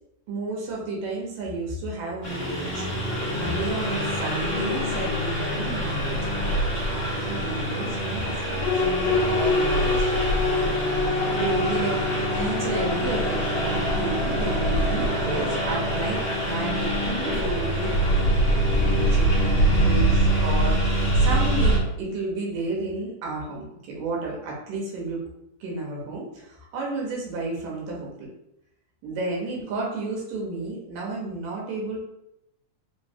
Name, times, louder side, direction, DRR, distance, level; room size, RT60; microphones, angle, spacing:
voice 1, 0.3-2.9 3.4-6.2 6.9-8.7 9.1-10.2 10.6-10.7 11.4-12.0 12.3-16.2 16.4-17.9 18.7-25.2 25.6-28.3 29.0-32.0, right 2 dB, 90° right, -3 dB, 2.7 m, -32 dB
Engine, 2.2-21.8, right 1 dB, 50° left, 0.9 m, -24 dB
sound 1, 8.6-20.6, left 3 dB, 80° left, 2.0 m, -29 dB
5.2 x 3.2 x 2.7 m, 0.86 s
omnidirectional pair, 3.7 m